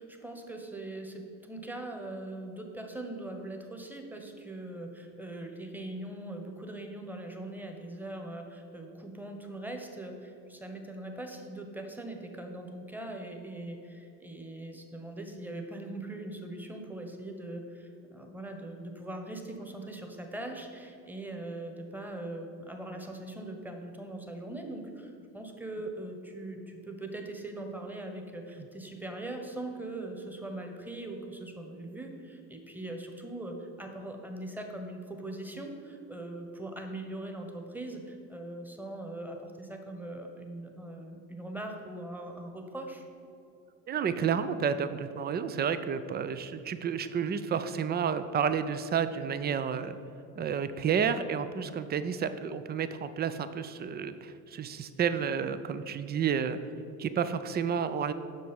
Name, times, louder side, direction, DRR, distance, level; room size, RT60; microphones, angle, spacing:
voice 1, 0.0-43.1, right 1 dB, 5° right, 3 dB, 1.2 m, -41 dB
voice 2, 43.9-50.0 50.4-56.6 57.0-58.1, right 7 dB, 20° right, 12 dB, 0.4 m, -30 dB
7.8 x 6.1 x 5.3 m, 2.8 s
hypercardioid pair, 65°, 49 cm